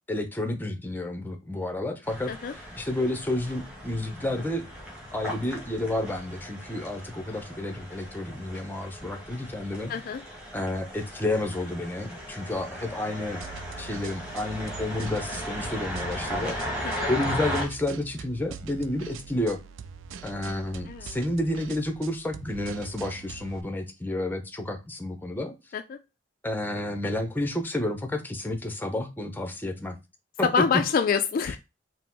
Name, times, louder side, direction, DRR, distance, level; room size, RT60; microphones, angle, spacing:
voice 1, 0.1-2.3 2.8-4.6 5.1-9.9 10.5-13.4 13.8-19.6 20.2-25.5 26.4-30.0 30.4-30.6 31.4-31.5, left 1 dB, 10° left, 6 dB, 0.7 m, -30 dB
sound 1, 2.0-17.7, equal, 5° right, 1.4 m, -37 dB
voice 2, 9.9-10.2 16.8-17.1 20.9-21.2 25.7-26.0 30.4-31.6, left 6 dB, 50° left, 8 dB, 0.3 m, -26 dB
sound 2, 13.4-23.6, right 6 dB, 85° right, 0.4 m, -42 dB
4.7 x 2.0 x 3.7 m, 0.25 s
head